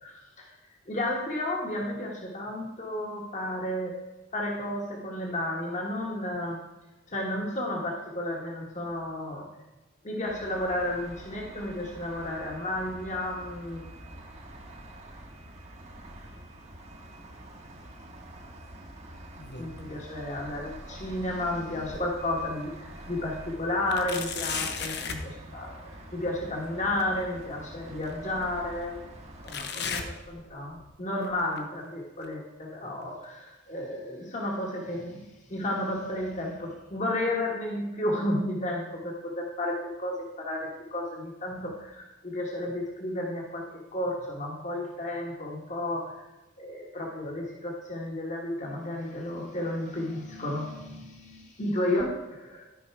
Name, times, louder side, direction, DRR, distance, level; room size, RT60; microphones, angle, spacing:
voice 1, 0.0-0.5 0.9-3.9 4.3-6.6 7.1-9.5 10.0-13.8 19.6-29.1 29.4-43.7 43.9-46.2 46.6-52.6, left 1 dB, 35° left, -1 dB, 1.4 m, -32 dB
sound 1, 10.3-29.5, right 1 dB, 35° right, 1.2 m, -46 dB
sound 2, 19.4-20.0 20.4-22.3 22.8-22.9 23.9-25.3 27.0-27.1 28.0-28.1 29.5-30.9 31.2-31.6 32.2-32.3 33.2-33.3, left 5 dB, 55° left, 0.9 m, -37 dB
13.0 x 5.4 x 4.7 m, 1.0 s
head